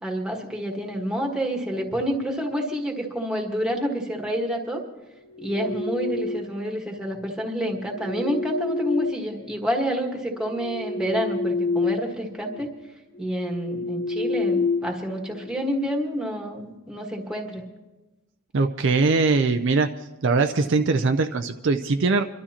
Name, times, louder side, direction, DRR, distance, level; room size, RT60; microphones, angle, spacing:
voice 1, 0.0-4.8 5.4-12.7 13.2-17.6, equal, 5° right, 1 dB, 1.5 m, -28 dB
sound 1, 5.2-6.7 7.7-9.8 10.3-12.1 12.4-12.6 13.1-15.5, left 3 dB, 65° left, 0.9 m, -29 dB
voice 2, 18.5-19.9 20.2-22.2, right 3 dB, 55° right, 7 dB, 0.5 m, -21 dB
28.0 x 12.5 x 2.9 m, 1.1 s
head